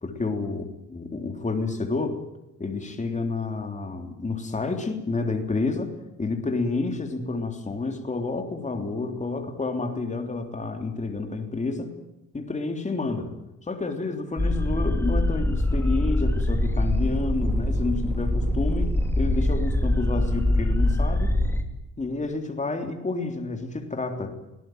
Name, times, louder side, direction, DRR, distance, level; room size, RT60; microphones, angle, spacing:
voice 1, 0.0-2.2 2.6-5.9 6.2-11.9 12.3-13.3 13.6-21.3 22.0-24.4, left 3 dB, 25° left, 5 dB, 3.4 m, -29 dB
sound 1, 14.4-21.6, left 1 dB, 10° left, 3.4 m, -24 dB
22.0 x 18.0 x 9.4 m, 0.95 s
cardioid pair, 90°, 30 cm